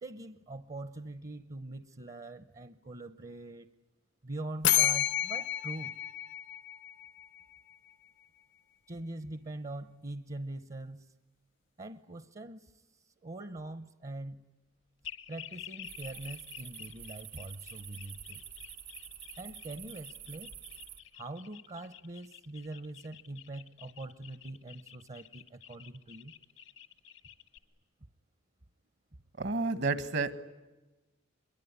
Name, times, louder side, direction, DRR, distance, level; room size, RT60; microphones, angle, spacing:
voice 1, 0.0-3.7 4.2-5.9 8.9-11.2 11.8-14.5 15.3-18.4 19.4-20.5 21.1-26.3, right 2 dB, 35° right, 0.8 m, -43 dB
sound 1, 4.6-7.4, left 13 dB, 70° left, 0.8 m, -30 dB
sound 2, 15.0-27.6, left 10 dB, 90° left, 2.0 m, -50 dB
sound 3, 15.8-21.0, right 10 dB, 85° right, 1.5 m, -48 dB
voice 2, 29.4-30.4, right 3 dB, 60° right, 1.5 m, -31 dB
25.0 x 22.5 x 9.6 m
head